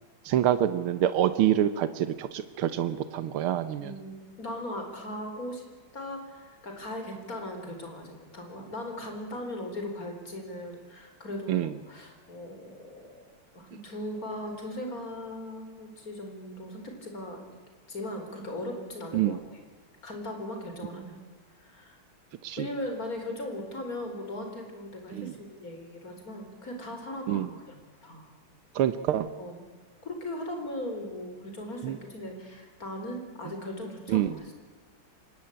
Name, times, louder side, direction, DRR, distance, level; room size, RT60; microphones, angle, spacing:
voice 1, 0.3-3.9 11.5-11.7 19.1-19.4 22.4-22.7 25.1-25.3 27.3-27.5 28.8-29.3 31.8-32.0 34.1-34.3, right 11 dB, 85° right, 12 dB, 1.8 m, -26 dB
voice 2, 3.8-5.6 5.9-13.3 13.5-17.4 17.9-19.4 20.0-21.2 21.5-22.0 22.6-28.2 29.4-29.7 30.0-34.5, left 1 dB, 40° left, 4 dB, 4.9 m, -38 dB
25.0 x 19.5 x 8.8 m, 1.4 s
omnidirectional pair, 2.3 m